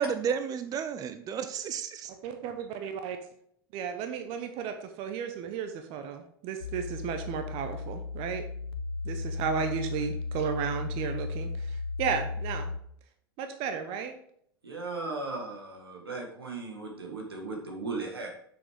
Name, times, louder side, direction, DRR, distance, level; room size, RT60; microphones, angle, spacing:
voice 1, 0.0-2.1, right 7 dB, 30° right, 10 dB, 0.6 m, -32 dB
voice 2, 2.2-3.2 3.7-8.4 9.0-12.7 13.4-14.1, right 7 dB, 50° right, 7 dB, 0.9 m, -34 dB
sound 1, 6.6-12.8, left 3 dB, 85° left, 0.8 m, -35 dB
voice 3, 14.6-18.3, right 3 dB, 90° right, 1 dB, 1.9 m, -37 dB
7.4 x 6.5 x 3.5 m, 0.67 s
hypercardioid pair, 90°, 12 cm